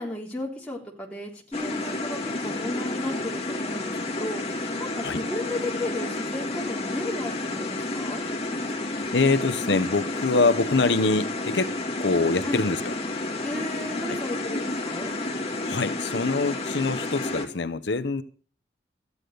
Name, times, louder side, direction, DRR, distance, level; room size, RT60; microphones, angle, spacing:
voice 1, 0.0-8.2 12.4-12.6 13.4-15.1, left 1 dB, 5° left, -3 dB, 3.6 m, -34 dB
sound 1, 1.5-17.4, left 2 dB, 30° left, 2.2 m, -31 dB
voice 2, 8.8-12.9 14.1-14.2 15.6-18.2, left 3 dB, 75° left, 10 dB, 0.9 m, -25 dB
14.0 x 9.8 x 6.7 m, 0.40 s
head